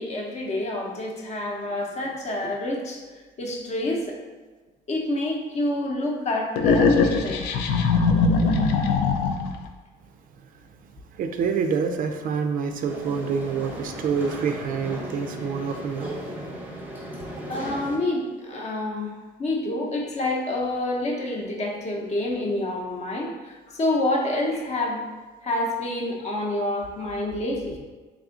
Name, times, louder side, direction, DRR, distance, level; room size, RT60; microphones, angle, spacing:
voice 1, 0.0-3.0 3.4-4.2 4.9-7.6 17.5-25.0 25.4-27.8, left 1 dB, 40° left, 0 dB, 0.7 m, -28 dB
sound 1, 6.6-9.6, left 4 dB, 85° left, 0.4 m, -21 dB
voice 2, 11.1-16.1, right 6 dB, 55° right, 6 dB, 0.4 m, -27 dB
sound 2, 12.8-18.0, equal, 10° right, 0.6 m, -36 dB
3.5 x 2.4 x 3.7 m, 1.3 s
cardioid pair, 110°, 17 cm